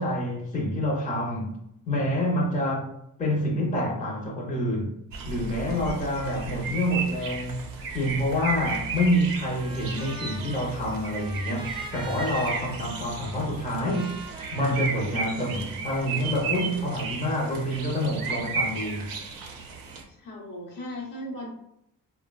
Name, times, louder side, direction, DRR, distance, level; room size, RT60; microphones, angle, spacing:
voice 1, 0.0-1.5 1.9-2.9 3.2-5.0 5.2-7.7 7.9-14.2 14.5-19.1, equal, 25° left, 0.6 m, -27 dB
sound 1, 5.1-20.0, right 5 dB, 85° right, 0.5 m, -34 dB
Trumpet, 9.5-15.7, right 2 dB, 15° right, 0.3 m, -44 dB
voice 2, 20.0-21.5, left 1 dB, 80° left, 0.9 m, -37 dB
3.0 x 2.2 x 2.2 m
cardioid pair, 115°, 33 cm